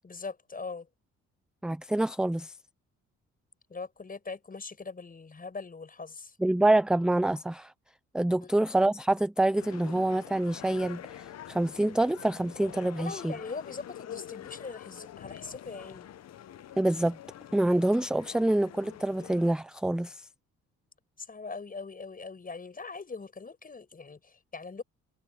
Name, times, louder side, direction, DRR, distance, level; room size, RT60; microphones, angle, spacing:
voice 1, 0.0-0.9 3.7-6.4 8.4-8.7 13.0-16.1 21.2-24.8, left 4 dB, 30° left, 5.7 m, -41 dB
voice 2, 1.6-2.5 6.4-7.7 8.1-13.3 16.8-17.2 17.5-20.3, right 1 dB, 5° right, 0.4 m, -26 dB
sound 1, 9.6-19.5, left 11 dB, 60° left, 1.0 m, -46 dB
cardioid pair, 90°, 30 cm